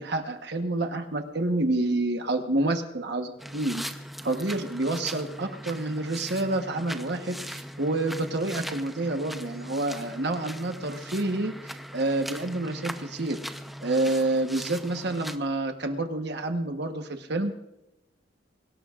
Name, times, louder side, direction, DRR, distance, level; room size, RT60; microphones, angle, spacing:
voice 1, 0.0-3.8 4.2-13.4 13.8-17.5, right 2 dB, 60° right, 6 dB, 1.1 m, -28 dB
sound 1, 3.4-15.4, equal, ahead, 0.7 m, -40 dB
24.0 x 18.0 x 2.5 m, 0.93 s
head